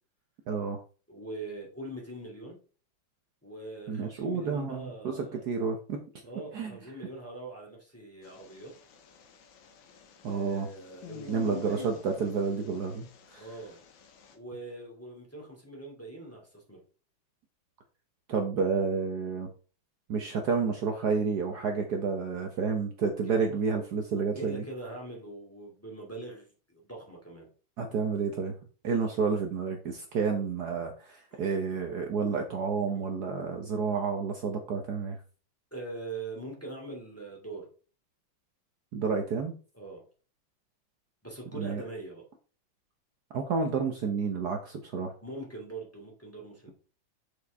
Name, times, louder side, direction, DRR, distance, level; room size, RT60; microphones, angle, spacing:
voice 1, 0.5-0.8 3.9-6.0 6.5-6.7 10.2-10.7 11.3-13.4 18.3-19.5 20.1-24.6 27.8-28.5 28.8-35.2 38.9-39.5 41.5-41.8 43.3-45.1, right 5 dB, 60° right, 3 dB, 1.4 m, -30 dB
voice 2, 1.1-2.6 3.4-5.4 6.2-8.7 10.2-12.0 13.4-13.8 14.3-16.8 23.2-23.4 24.3-27.5 31.3-31.4 32.9-33.0 35.7-37.7 39.7-40.0 41.2-42.2 45.2-46.7, right 2 dB, 5° left, -2 dB, 2.3 m, -42 dB
sound 1, 8.2-14.4, left 7 dB, 75° left, 1.8 m, -48 dB
6.9 x 6.6 x 3.4 m, 0.38 s
omnidirectional pair, 2.2 m